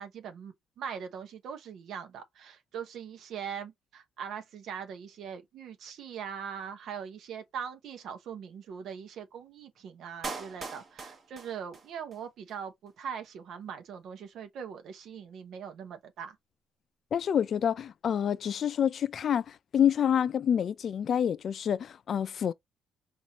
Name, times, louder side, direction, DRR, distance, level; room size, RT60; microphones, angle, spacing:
voice 1, 0.0-16.4, right 7 dB, 75° right, 0.8 m, -41 dB
Clapping, 10.2-12.2 12.5-12.6, right 4 dB, 45° right, 1.1 m, -41 dB
voice 2, 17.1-22.5, left 9 dB, 55° left, 0.3 m, -27 dB
4.2 x 2.5 x 2.9 m
cardioid pair, 90°, 0 cm